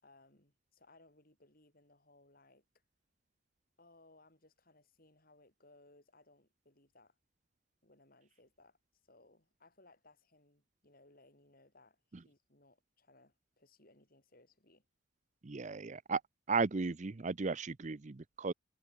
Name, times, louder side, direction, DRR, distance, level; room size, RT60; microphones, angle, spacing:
voice 1, 0.0-2.6 3.8-7.1 7.8-8.8 9.0-14.8, left 2 dB, 45° left, 7.9 m, -65 dB
voice 2, 15.4-16.2 16.5-18.5, right 4 dB, 35° right, 0.6 m, -35 dB
head